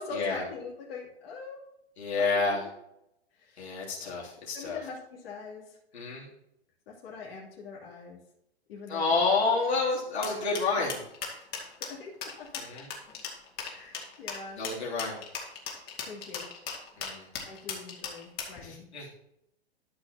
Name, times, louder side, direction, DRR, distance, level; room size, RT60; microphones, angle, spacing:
voice 1, 0.0-1.6 2.2-2.7 3.3-3.7 4.5-5.8 6.9-8.2 8.7-9.3 10.2-10.4 11.8-12.6 13.7-14.6 16.0-16.5 17.4-18.9, left 4 dB, 65° left, -4 dB, 2.9 m, -43 dB
voice 2, 2.0-2.6 3.6-4.8 5.9-6.3 8.9-11.0 12.7-12.8 14.6-15.2 17.0-17.3 18.6-19.2, left 4 dB, 80° left, -5 dB, 3.1 m, -29 dB
sound 1, 10.2-18.6, left 6 dB, 30° left, 2.4 m, -37 dB
13.0 x 6.3 x 2.9 m, 0.81 s
hypercardioid pair, 115°, 32 cm